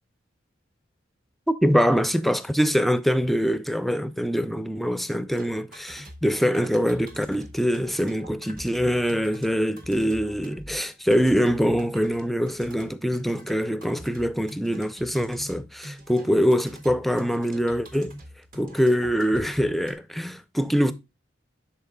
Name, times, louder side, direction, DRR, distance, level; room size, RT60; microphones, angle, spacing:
voice 1, 1.5-18.1 18.5-20.9, equal, ahead, 0.5 m, -24 dB
sound 1, 5.4-19.9, equal, 50° right, 1.5 m, -44 dB
12.0 x 4.2 x 2.3 m
head